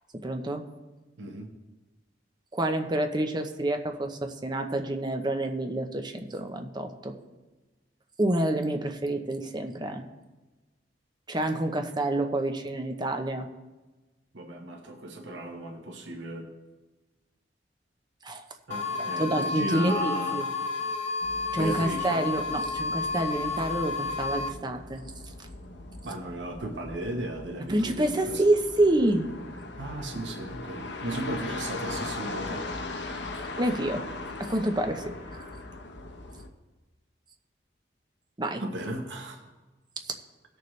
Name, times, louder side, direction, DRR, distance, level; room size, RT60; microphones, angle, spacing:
voice 1, 0.2-0.6 2.5-7.1 8.2-10.0 11.3-13.5 18.2-18.5 19.2-20.4 21.5-25.0 27.7-29.3 33.6-34.0 34.4-35.4 38.4-38.6, right 1 dB, 25° right, 5 dB, 0.8 m, -28 dB
voice 2, 1.2-1.5 14.3-16.5 18.7-20.5 21.5-22.2 26.0-28.4 29.8-32.6 38.6-39.4, right 1 dB, 80° right, 3 dB, 1.2 m, -35 dB
sound 1, 18.7-24.5, left 4 dB, 40° left, 0.7 m, -31 dB
sound 2, 21.2-36.5, left 2 dB, 75° left, 1.0 m, -40 dB
17.5 x 6.7 x 3.2 m, 1.2 s
head